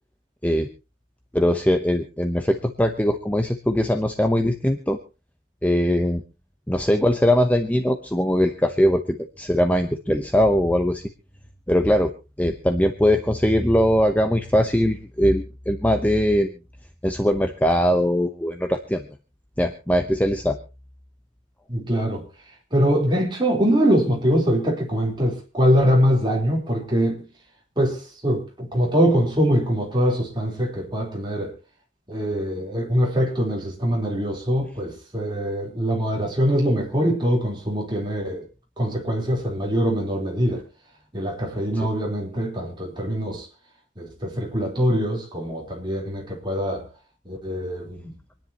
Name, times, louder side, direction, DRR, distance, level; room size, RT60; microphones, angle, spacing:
voice 1, 1.3-5.0 5.6-6.2 6.7-11.0 11.7-12.1 12.4-16.5 17.0-19.0 19.6-20.6, equal, 10° left, 0.8 m, -21 dB
voice 2, 21.7-22.2 22.7-27.3 27.8-31.5 32.1-38.4 38.8-40.6 41.1-43.5 44.0-46.9 47.3-48.1, equal, 25° right, 3.9 m, -23 dB
26.5 x 10.5 x 2.9 m
head